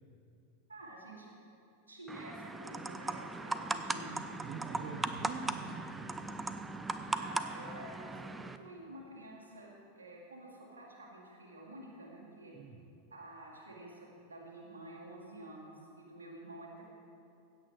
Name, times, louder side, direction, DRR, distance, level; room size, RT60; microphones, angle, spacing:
voice 1, 0.7-1.3 1.9-4.2 4.7-4.9 7.1-9.7 10.0-12.6 13.1-16.8, right 1 dB, 75° right, -2 dB, 2.5 m, -50 dB
sound 1, 2.1-8.6, right 3 dB, 10° right, 0.5 m, -38 dB
voice 2, 4.4-6.4 12.5-12.8, right 5 dB, 40° right, 2 dB, 0.9 m, -45 dB
16.0 x 8.5 x 4.8 m, 2.7 s
figure-of-eight pair, 90°, 0 cm